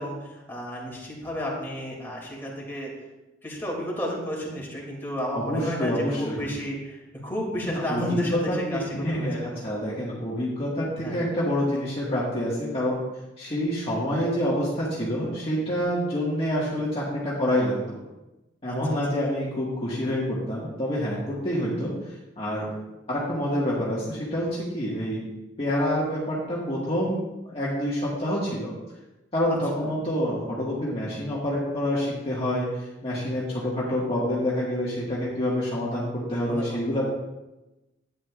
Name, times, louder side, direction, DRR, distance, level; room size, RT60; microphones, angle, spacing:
voice 1, 0.0-2.9 3.4-9.5 11.0-11.2 18.7-18.8 29.8-29.9 36.4-36.8, equal, 10° left, -3 dB, 2.5 m, -32 dB
voice 2, 5.3-6.4 7.7-13.0 13.4-18.0 18.6-22.7 23.1-25.2 25.6-28.7 29.3-37.0, equal, 30° left, -7 dB, 1.6 m, -27 dB
11.5 x 9.7 x 2.4 m, 1.0 s
head